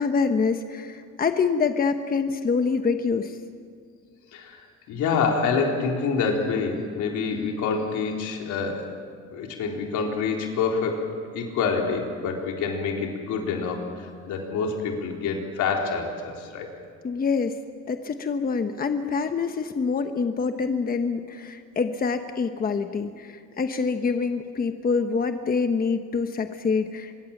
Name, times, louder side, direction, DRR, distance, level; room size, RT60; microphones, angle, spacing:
voice 1, 0.0-3.4 17.0-17.6 17.9-27.1, left 5 dB, 30° left, 7 dB, 1.1 m, -26 dB
voice 2, 4.9-8.9 9.3-16.7, left 5 dB, 85° left, 1 dB, 4.1 m, -27 dB
25.0 x 23.0 x 7.3 m, 2.1 s
cardioid pair, 125°, 29 cm